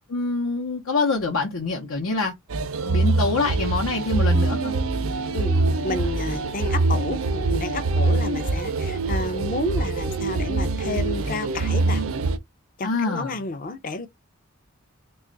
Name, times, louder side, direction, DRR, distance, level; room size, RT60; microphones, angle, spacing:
voice 1, 0.1-2.3 2.8-4.7 12.8-13.4, left 3 dB, 85° left, 0.8 m, -25 dB
sound 1, 2.5-12.4, right 3 dB, 75° right, 0.5 m, -24 dB
sound 2, 4.3-7.9, right 7 dB, 20° right, 0.4 m, -37 dB
voice 2, 5.3-12.1 12.8-14.1, left 3 dB, 40° left, 0.5 m, -31 dB
3.1 x 2.4 x 3.8 m
head